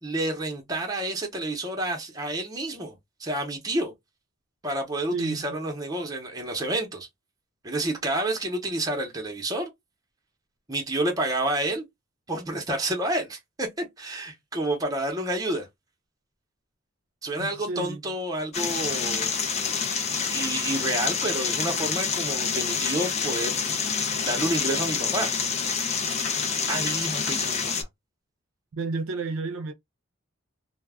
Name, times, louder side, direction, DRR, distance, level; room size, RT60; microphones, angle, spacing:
voice 1, 0.0-2.9 3.2-3.9 4.6-7.1 7.6-9.7 10.7-11.8 12.3-15.7 17.2-19.3 20.3-23.7 24.3-25.3 26.7-27.7, right 1 dB, 20° right, 0.6 m, -29 dB
voice 2, 5.1-5.6 17.4-18.0 28.7-29.7, right 3 dB, 75° right, 0.4 m, -31 dB
sound 1, 18.5-27.8, left 6 dB, 30° left, 0.4 m, -27 dB
2.2 x 2.0 x 3.3 m
head